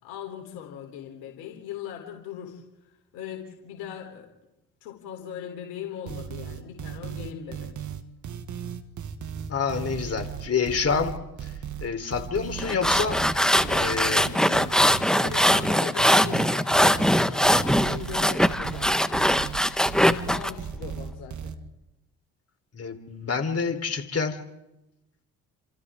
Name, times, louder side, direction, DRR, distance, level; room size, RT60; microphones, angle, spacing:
voice 1, 0.0-4.3 4.8-7.9 13.4-14.8 15.2-19.3 20.0-21.6, left 9 dB, 80° left, 2 dB, 3.7 m, -39 dB
sound 1, 6.1-21.5, right 8 dB, 55° right, 2.0 m, -36 dB
voice 2, 9.5-11.1 11.8-13.2 13.7-14.2 22.7-24.4, left 5 dB, 40° left, 6 dB, 3.8 m, -27 dB
sound 2, 12.6-20.5, equal, ahead, 1.3 m, -21 dB
28.5 x 27.5 x 3.7 m, 0.93 s
hypercardioid pair, 55°, 36 cm